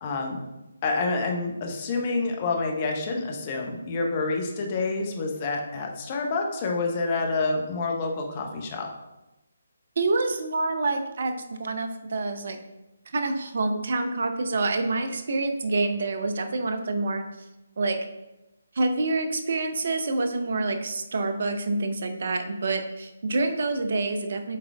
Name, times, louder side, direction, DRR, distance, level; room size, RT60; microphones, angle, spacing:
voice 1, 0.0-0.5 0.8-8.9, left 3 dB, 35° left, 2 dB, 1.1 m, -28 dB
voice 2, 10.0-12.6 13.1-17.2 17.8-18.0 18.7-24.6, right 3 dB, 55° right, 7 dB, 0.8 m, -27 dB
7.6 x 3.9 x 3.5 m, 0.97 s
figure-of-eight pair, 150°, 0 cm